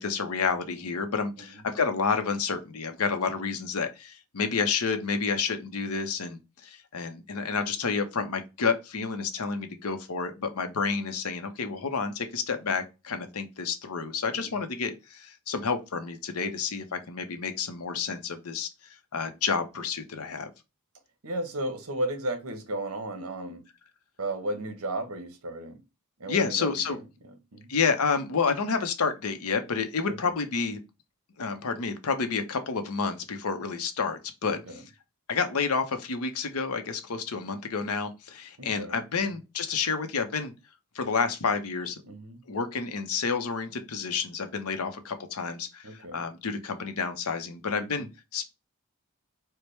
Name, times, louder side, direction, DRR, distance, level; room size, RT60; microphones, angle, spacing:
voice 1, 0.0-18.7 19.1-20.5 26.3-27.0 27.7-30.8 31.4-34.8 35.3-40.5 40.9-42.0 42.5-48.5, left 5 dB, 90° left, 0.7 m, -30 dB
voice 2, 21.2-23.6 24.2-25.8 26.2-27.7 30.1-30.3 34.4-34.8 38.6-39.0 42.0-42.4 45.8-46.2 47.8-48.1, right 1 dB, 80° right, 0.9 m, -35 dB
4.5 x 2.1 x 3.1 m
head